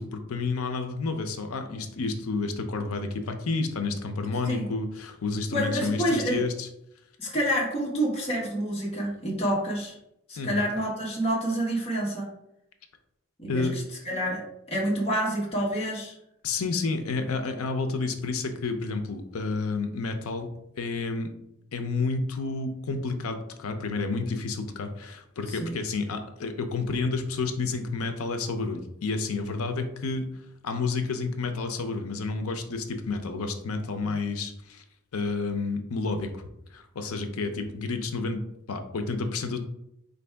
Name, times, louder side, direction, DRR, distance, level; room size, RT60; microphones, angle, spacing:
voice 1, 0.0-6.7 10.4-10.6 13.5-13.7 16.4-20.5 20.8-21.3 21.7-30.3 30.6-34.8 35.1-36.4 36.7-38.4 38.7-39.6, left 3 dB, 85° left, 7 dB, 0.6 m, -30 dB
voice 2, 5.5-6.4 7.2-9.9 10.3-12.3 13.4-14.4 14.7-16.1 25.5-25.8, right 1 dB, 30° left, -5 dB, 1.2 m, -28 dB
4.5 x 2.6 x 3.3 m, 0.81 s
head